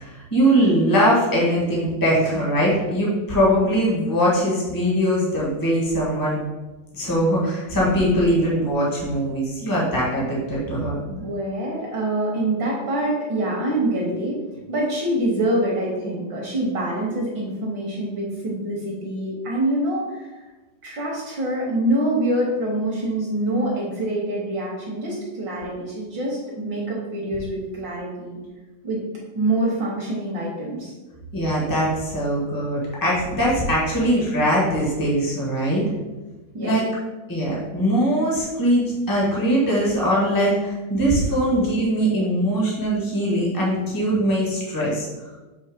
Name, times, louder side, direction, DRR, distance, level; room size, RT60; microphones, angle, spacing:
voice 1, 0.0-6.4 6.9-11.0 31.3-35.9 36.6-36.8 37.3-45.1, equal, 30° left, -5 dB, 0.4 m, -21 dB
voice 2, 11.0-14.4 14.7-20.4 20.8-28.4 28.8-29.0 29.3-30.9 36.5-36.7, right 1 dB, 60° right, -3 dB, 1.2 m, -25 dB
6.9 x 3.1 x 5.0 m, 1.2 s
omnidirectional pair, 3.3 m